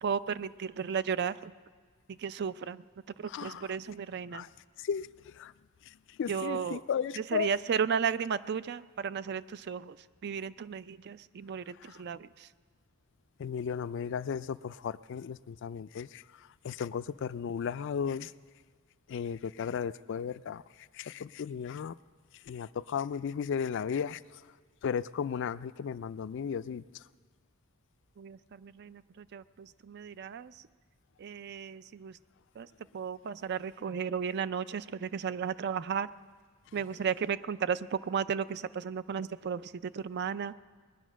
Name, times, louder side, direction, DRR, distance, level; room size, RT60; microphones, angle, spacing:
voice 1, 0.0-1.5 2.1-2.8 3.2-4.5 6.3-6.8 7.2-10.0 10.2-12.5 28.2-30.5 31.2-32.2 32.6-32.7 32.9-36.1 36.7-40.5, right 7 dB, 55° right, 16 dB, 0.4 m, -34 dB
voice 2, 3.3-3.8 4.3-4.5 4.8-5.5 5.9-7.5 11.8-12.0 13.4-18.3 19.1-20.6 20.9-21.9 22.5-24.4 24.8-26.8, left 7 dB, 60° left, 17 dB, 0.3 m, -35 dB
20.5 x 10.0 x 6.2 m, 1.5 s
head